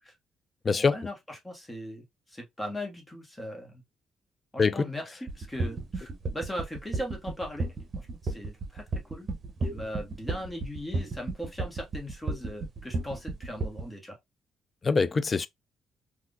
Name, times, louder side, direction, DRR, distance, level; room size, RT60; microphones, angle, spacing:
voice 1, 0.7-3.8 4.5-9.3 9.6-14.2, equal, 20° left, 1.3 m, -39 dB
sound 1, 5.3-13.8, right 3 dB, 45° right, 0.9 m, -32 dB
voice 2, 14.8-15.5, left 4 dB, 40° left, 0.3 m, -24 dB
3.4 x 2.4 x 2.5 m
supercardioid pair, 65°, 0 cm